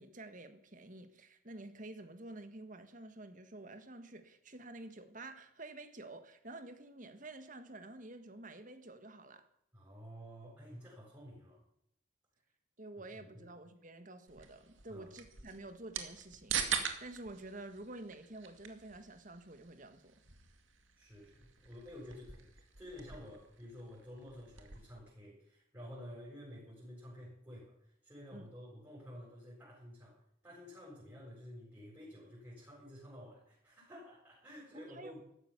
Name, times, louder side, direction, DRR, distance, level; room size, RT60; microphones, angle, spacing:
voice 1, 0.0-9.4 12.8-20.2 28.3-28.5 34.7-35.2, right 2 dB, 40° right, 1.6 m, -50 dB
voice 2, 9.7-11.6 13.1-13.5 14.9-15.1 21.0-30.2 30.4-35.2, equal, 15° right, 7.1 m, -51 dB
sound 1, 14.3-25.0, right 7 dB, 80° right, 2.3 m, -44 dB
15.0 x 13.0 x 7.2 m
head